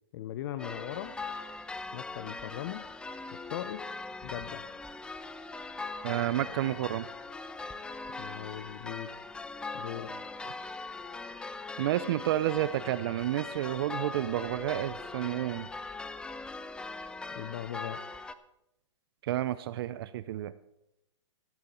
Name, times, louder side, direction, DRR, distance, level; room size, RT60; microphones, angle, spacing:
voice 1, 0.1-1.1 1.9-2.9 3.5-3.8 4.2-4.6 8.2-9.1 9.7-10.1 17.4-18.0, left 12 dB, 45° left, 12 dB, 0.6 m, -39 dB
sound 1, 0.6-18.3, left 3 dB, 5° left, 0.5 m, -41 dB
voice 2, 6.0-7.1 11.8-15.7 19.2-20.5, right 13 dB, 50° right, 15 dB, 0.5 m, -30 dB
16.5 x 9.1 x 4.4 m, 0.86 s
hypercardioid pair, 130°, 16 cm